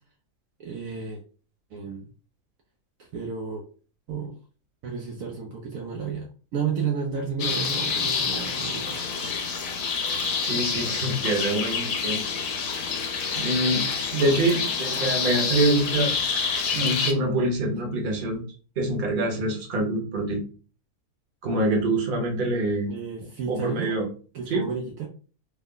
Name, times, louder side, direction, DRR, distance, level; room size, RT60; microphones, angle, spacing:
voice 1, 0.6-1.2 1.7-2.1 3.0-3.6 4.1-4.4 4.8-9.0 9.5-9.7 22.9-23.9 24.3-25.1, right 6 dB, 70° right, 1 dB, 0.9 m, -32 dB
sound 1, 7.4-17.1, left 5 dB, 65° left, 1.1 m, -27 dB
voice 2, 10.4-12.2 13.3-16.1 16.7-18.4 18.8-20.4 21.4-22.9 23.5-24.1 24.5-24.7, right 1 dB, 40° right, 1 dB, 0.9 m, -25 dB
3.3 x 2.1 x 3.7 m, 0.39 s
omnidirectional pair, 1.6 m